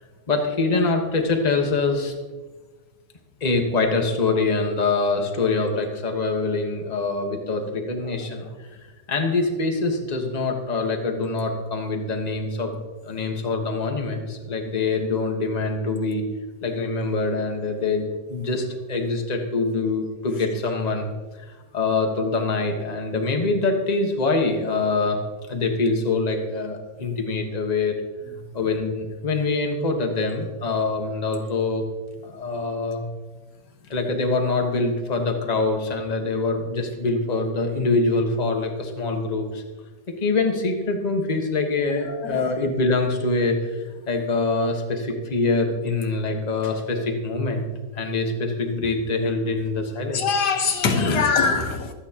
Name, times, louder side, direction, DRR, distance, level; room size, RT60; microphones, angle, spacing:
voice 1, 0.3-2.1 3.4-12.8 13.0-16.2 16.6-21.1 21.4-21.5 21.7-25.2 25.5-28.0 28.5-31.8 32.2-33.0 33.9-39.6 40.1-47.6 47.9-50.4 51.0-51.3, left 3 dB, 25° left, 1.4 m, -24 dB
voice 2, 42.1-42.4 50.1-51.9, left 5 dB, 80° left, 1.7 m, -23 dB
24.5 x 9.0 x 3.0 m
omnidirectional pair, 1.8 m